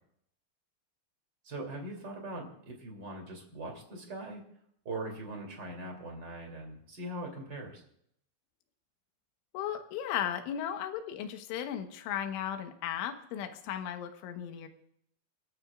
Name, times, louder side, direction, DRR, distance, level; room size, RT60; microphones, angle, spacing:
voice 1, 1.4-4.4 4.8-7.8, right 2 dB, 25° right, 2 dB, 2.8 m, -41 dB
voice 2, 9.5-14.7, left 10 dB, 75° left, 6 dB, 3.5 m, -36 dB
29.5 x 14.5 x 2.5 m, 0.70 s
omnidirectional pair, 5.9 m